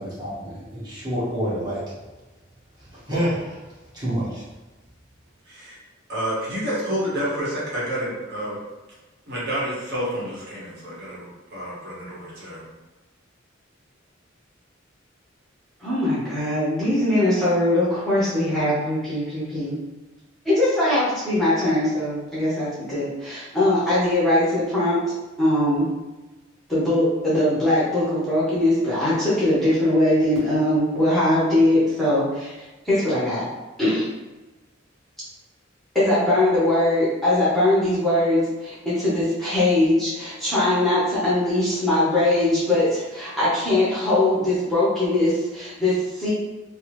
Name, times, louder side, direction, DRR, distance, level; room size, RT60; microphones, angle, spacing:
voice 1, 0.0-1.8 2.8-4.4, equal, 20° right, -9 dB, 1.1 m, -28 dB
voice 2, 5.5-5.8 6.1-8.6 9.3-12.6, equal, 55° right, -7 dB, 1.0 m, -29 dB
voice 3, 15.8-19.7 20.4-25.0 25.4-25.9 26.7-32.5 32.8-33.4 33.8-34.1 35.9-46.3, left 1 dB, ahead, -10 dB, 0.8 m, -21 dB
3.3 x 2.0 x 3.0 m, 1.1 s
head